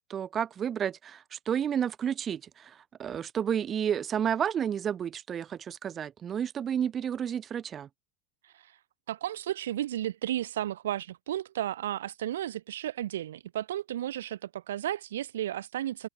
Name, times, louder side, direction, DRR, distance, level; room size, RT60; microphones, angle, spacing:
voice 1, 0.1-7.9, right 8 dB, 30° right, 4.0 m, -31 dB
voice 2, 8.4-8.8 9.1-16.1, right 12 dB, 70° right, 2.1 m, -33 dB
figure-of-eight pair, 85°, 0 cm